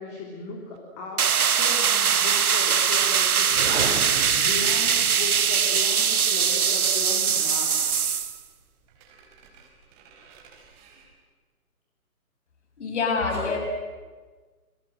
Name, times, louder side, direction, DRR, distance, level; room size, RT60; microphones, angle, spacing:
voice 1, 0.0-7.9, left 3 dB, 20° left, 0 dB, 3.4 m, -37 dB
sound 1, 1.2-8.4, right 7 dB, 75° right, 1.3 m, -22 dB
sound 2, 2.7-11.1, right 6 dB, 20° right, 4.3 m, -51 dB
sound 3, 3.4-5.5, right 5 dB, 45° right, 4.1 m, -33 dB
voice 2, 12.8-13.6, left 4 dB, 50° left, 3 dB, 7.4 m, -26 dB
29.5 x 24.5 x 7.9 m, 1.4 s
hypercardioid pair, 155°, 44 cm